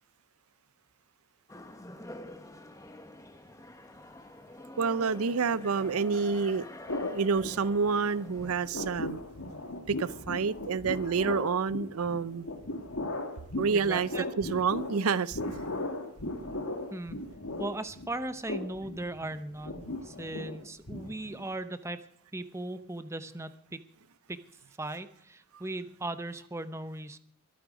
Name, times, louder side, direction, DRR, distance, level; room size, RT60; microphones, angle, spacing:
sound 1, 1.5-8.6, left 1 dB, 15° left, 1.0 m, -47 dB
voice 1, 4.8-6.7 7.0-9.2 9.9-12.5 13.6-14.1 14.4-15.4, right 5 dB, 85° right, 17 dB, 0.6 m, -28 dB
sound 2, 6.9-8.1 8.4-21.5, left 2 dB, 80° left, 1.9 m, -37 dB
voice 2, 13.7-14.3 16.9-17.2 17.6-22.1 22.3-23.8 24.3-24.4 24.8-27.2, right 2 dB, 15° right, 11 dB, 0.7 m, -38 dB
22.5 x 8.6 x 5.1 m, 0.62 s
head